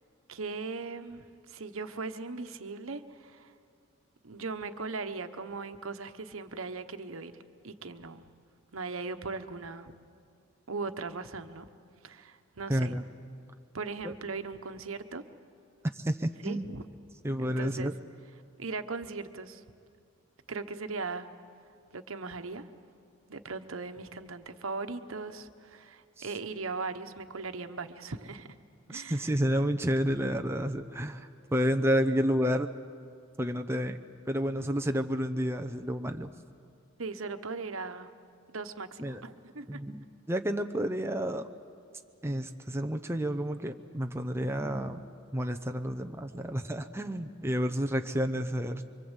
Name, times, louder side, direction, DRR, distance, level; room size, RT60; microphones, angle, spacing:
voice 1, 0.3-3.5 4.2-8.3 8.7-9.9 10.7-11.7 12.0-12.9 13.7-15.2 16.4-16.8 17.4-17.9 18.6-19.6 20.5-21.3 21.9-22.7 23.3-28.5 28.9-29.3 37.0-38.1 38.5-39.8, right 4 dB, 80° right, 8 dB, 1.1 m, -39 dB
voice 2, 12.7-13.0 14.0-14.1 15.9-16.7 17.2-17.9 26.2-26.3 28.9-32.7 33.4-34.0 34.3-36.3 39.0-39.2 39.7-41.5 42.2-45.0 45.3-48.8, equal, 10° right, 5 dB, 0.8 m, -30 dB
25.5 x 24.5 x 8.2 m, 2.3 s
head